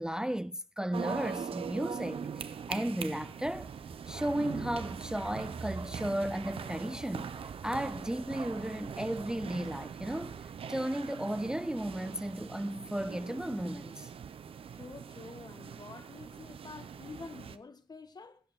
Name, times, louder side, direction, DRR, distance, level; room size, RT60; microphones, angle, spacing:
voice 1, 0.0-3.7 4.1-7.3 7.6-10.4 10.7-14.1, right 1 dB, 5° right, 0.5 m, -34 dB
sound 1, 0.9-17.6, right 7 dB, 75° right, 0.8 m, -42 dB
Bark, 3.4-10.5, right 4 dB, 45° right, 0.7 m, -47 dB
voice 2, 14.8-18.4, left 4 dB, 45° left, 1.4 m, -48 dB
21.5 x 8.5 x 3.9 m
cardioid pair, 55°, 9 cm